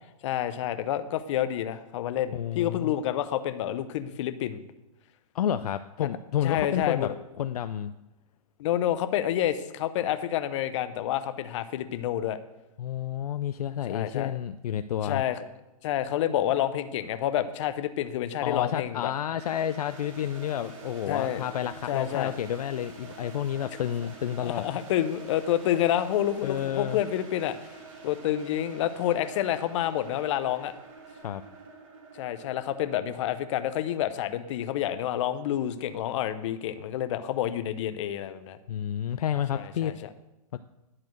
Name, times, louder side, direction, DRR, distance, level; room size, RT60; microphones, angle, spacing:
voice 1, 0.2-4.6 6.0-6.1 6.4-7.1 8.6-12.4 13.9-14.3 15.0-15.4 15.8-19.1 21.1-21.4 21.9-22.3 24.4-27.6 28.0-30.7 32.1-38.6 39.5-40.1, left 11 dB, 50° left, 11 dB, 0.8 m, -28 dB
voice 2, 2.3-2.9 5.3-7.1 7.4-7.9 12.8-15.2 18.4-24.6 26.4-27.0 31.2-31.4 38.7-39.9 40.5-40.6, left 10 dB, 70° left, 10 dB, 0.4 m, -30 dB
sound 1, 19.4-36.2, right 3 dB, 50° right, 2.5 m, -47 dB
11.0 x 4.4 x 7.8 m, 0.97 s
hypercardioid pair, 125°, 20 cm